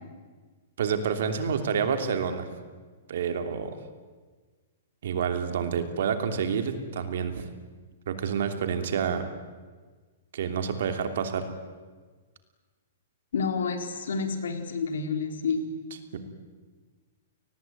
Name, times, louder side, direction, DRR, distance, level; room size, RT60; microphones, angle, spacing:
voice 1, 0.8-2.5 3.1-3.8 5.0-7.4 8.1-9.2 10.3-11.4 16.1-16.2, right 7 dB, 55° right, 7 dB, 2.9 m, -28 dB
voice 2, 13.3-15.6, left 5 dB, 90° left, 5 dB, 4.4 m, -29 dB
29.0 x 19.5 x 9.3 m, 1.4 s
hypercardioid pair, 180°, 0 cm